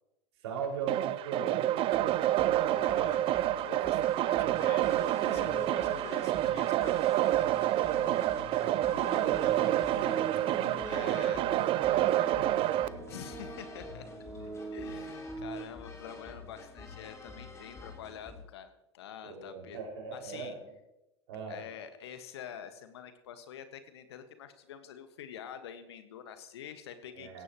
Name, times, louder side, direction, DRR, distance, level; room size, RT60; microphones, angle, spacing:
voice 1, 0.4-2.8 4.5-4.9 7.9-13.0 19.2-20.7 21.3-21.6 27.1-27.4, right 5 dB, 70° right, -1 dB, 5.7 m, -41 dB
sound 1, 0.9-12.9, right 13 dB, 40° right, 0.5 m, -28 dB
sound 2, 1.9-18.4, left 4 dB, 20° left, 3.7 m, -49 dB
voice 2, 2.7-7.1 10.8-11.4 13.1-14.1 14.4-19.8 20.1-20.5 21.5-27.4, left 9 dB, 70° left, 9 dB, 1.6 m, -46 dB
sound 3, 5.1-6.2 6.9-11.4 12.2-15.6, right 3 dB, 85° right, 6.5 m, -44 dB
16.5 x 16.0 x 3.1 m, 0.92 s
hypercardioid pair, 85°, 14 cm